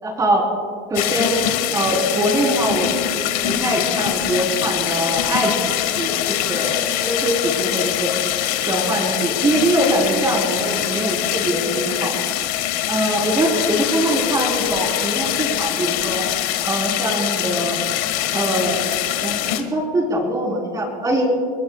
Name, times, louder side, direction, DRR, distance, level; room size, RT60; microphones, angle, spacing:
voice 1, 0.0-0.5 0.9-1.4 1.7-8.1 8.6-12.2 12.9-16.2 16.6-17.8 18.3-18.8 19.2-19.4 19.7-21.3, right 1 dB, 15° right, 0 dB, 4.2 m, -22 dB
sound 1, 0.9-19.6, left 12 dB, 65° left, 1.7 m, -23 dB
29.5 x 20.0 x 2.4 m, 2.3 s
supercardioid pair, 150°, 21 cm